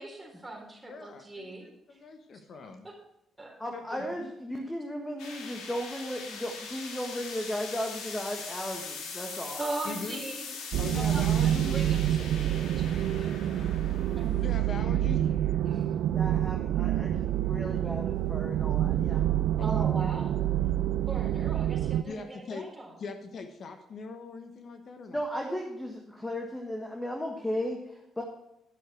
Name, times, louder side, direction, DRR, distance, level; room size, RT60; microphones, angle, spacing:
voice 1, 0.0-2.0 2.3-2.4 2.8-2.9 3.4-3.6 9.5-10.5 10.9-13.6 14.2-14.3 15.7-15.9 19.6-20.4 21.1-22.9, right 2 dB, 10° right, 0 dB, 3.8 m, -40 dB
voice 2, 0.8-2.9 3.7-4.3 9.8-10.2 10.8-11.7 13.8-13.9 14.3-15.2 19.6-19.8 22.1-22.6 23.0-25.2, left 4 dB, 55° left, 6 dB, 1.2 m, -41 dB
voice 3, 3.6-9.6 16.1-19.3 25.1-28.2, equal, 10° left, 2 dB, 1.5 m, -35 dB
sound 1, 5.2-16.3, left 4 dB, 90° left, 2.4 m, -42 dB
sound 2, 10.7-22.0, right 12 dB, 75° right, 0.4 m, -27 dB
11.5 x 6.5 x 6.3 m, 0.83 s
cardioid pair, 90°, 0 cm